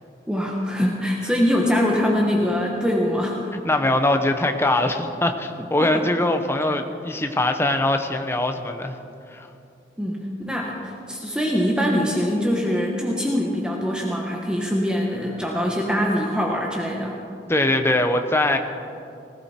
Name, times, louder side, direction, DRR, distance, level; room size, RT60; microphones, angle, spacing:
voice 1, 0.3-3.4 5.8-6.0 10.0-17.2, equal, 5° right, -2 dB, 1.3 m, -23 dB
voice 2, 3.5-9.0 9.3-9.5 17.5-18.6, left 1 dB, 15° left, 6 dB, 0.9 m, -22 dB
19.0 x 15.5 x 4.4 m, 2.6 s
head